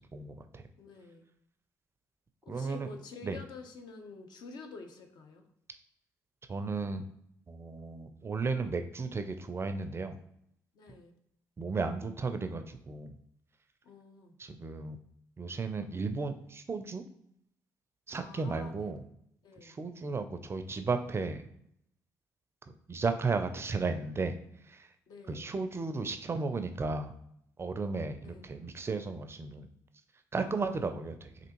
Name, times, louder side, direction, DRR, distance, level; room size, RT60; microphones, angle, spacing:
voice 1, 0.1-0.6 2.5-2.9 3.2-3.4 6.5-7.0 7.5-10.2 11.6-13.1 14.4-15.0 15.4-17.0 18.1-19.0 19.6-21.4 22.9-24.4 24.7-24.9 25.3-27.1 27.6-29.7 30.3-31.3, right 4 dB, 30° right, 8 dB, 0.4 m, -34 dB
voice 2, 0.8-1.2 2.4-5.4 10.8-11.1 13.8-14.3 18.2-18.9 19.4-19.8 25.1-25.5 28.2-28.6 30.4-30.8, left 4 dB, 60° left, 5 dB, 0.6 m, -49 dB
3.3 x 2.5 x 2.9 m, 0.73 s
hypercardioid pair, 50°, 8 cm